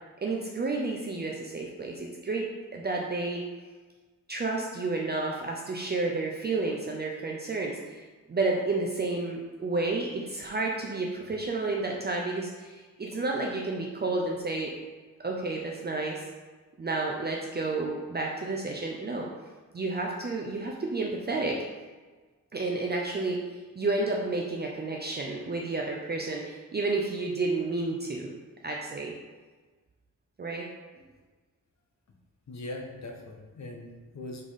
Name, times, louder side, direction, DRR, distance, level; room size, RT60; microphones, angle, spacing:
voice 1, 0.2-3.4 4.3-8.0 8.3-14.7 15.2-16.2 16.8-19.3 19.7-21.6 22.5-23.4 23.8-28.3 28.6-29.1 30.4-30.7, right 3 dB, 30° right, -1 dB, 0.5 m, -31 dB
voice 2, 32.5-34.4, left 2 dB, 55° left, 2 dB, 1.0 m, -40 dB
5.6 x 4.0 x 4.9 m, 1.3 s
wide cardioid pair, 170°, 33 cm